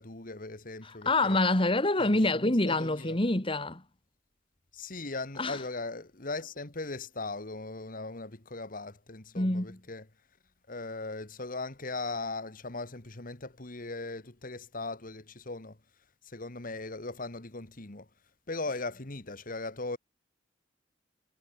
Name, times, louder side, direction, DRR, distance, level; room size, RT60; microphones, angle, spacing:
voice 1, 0.0-1.4 2.0-3.2 4.7-10.1 10.7-15.8 16.2-18.1 18.5-20.0, left 3 dB, 50° left, 1.9 m, -39 dB
voice 2, 0.8-3.8 5.4-5.6 9.4-9.8, left 2 dB, 30° left, 2.3 m, -26 dB
head